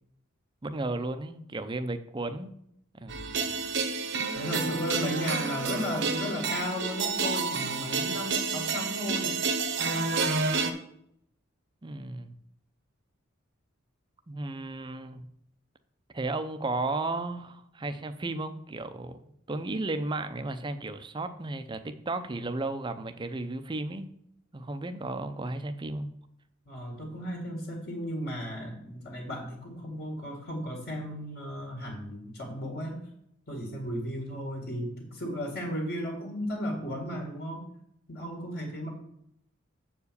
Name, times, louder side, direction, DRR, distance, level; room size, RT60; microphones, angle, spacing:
voice 1, 0.6-2.5 2.9-3.2 11.8-12.3 14.3-15.3 16.1-19.2 19.5-24.1 24.5-26.1, right 2 dB, 25° right, 9 dB, 0.6 m, -34 dB
sound 1, 3.1-10.7, right 4 dB, 60° right, 0.9 m, -29 dB
voice 2, 4.3-9.4 26.7-33.1 33.5-37.7 38.1-38.9, equal, 50° left, 0 dB, 1.9 m, -35 dB
7.4 x 4.8 x 6.8 m, 0.73 s
head